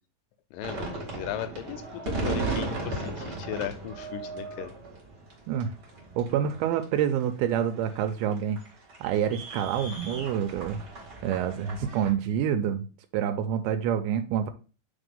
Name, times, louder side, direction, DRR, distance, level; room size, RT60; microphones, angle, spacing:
voice 1, 0.5-4.7, left 10 dB, 80° left, 9 dB, 2.1 m, -36 dB
sound 1, 0.6-12.1, right 3 dB, 40° right, 1.8 m, -36 dB
voice 2, 6.2-8.6 9.0-10.8 11.2-12.8 13.1-14.5, right 9 dB, 90° right, 6 dB, 2.5 m, -27 dB
4.9 x 3.9 x 5.2 m, 0.34 s
omnidirectional pair, 4.3 m